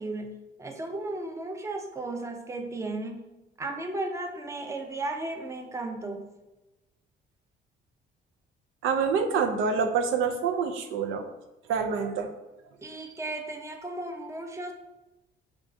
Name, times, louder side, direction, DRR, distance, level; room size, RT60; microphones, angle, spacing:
voice 1, 0.0-3.2 3.6-6.3 12.8-14.7, right 2 dB, 15° right, 3 dB, 0.5 m, -35 dB
voice 2, 8.8-11.2 11.7-12.3 13.0-13.1, right 5 dB, 85° right, 4 dB, 0.5 m, -27 dB
6.1 x 2.3 x 2.5 m, 1.0 s
cardioid pair, 90°, 20 cm